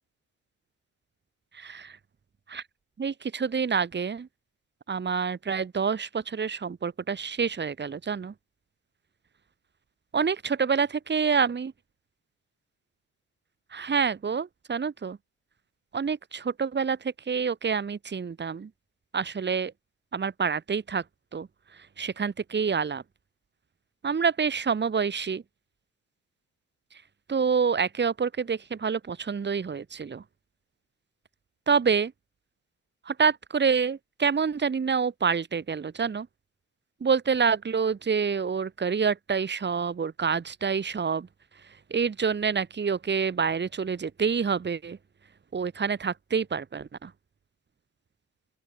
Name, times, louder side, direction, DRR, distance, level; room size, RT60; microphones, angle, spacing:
voice 1, 1.5-2.0 2.5-2.6 3.0-4.3 4.9-8.3 10.1-11.7 13.7-15.2 15.9-18.7 19.1-19.7 20.1-21.0 21.3-23.0 24.0-25.4 27.3-30.2 31.7-32.1 33.0-36.3 37.0-41.3 41.9-45.0 45.5-47.1, right 6 dB, 35° right, 3.1 m, -27 dB
open air
cardioid pair, 90°, 30 cm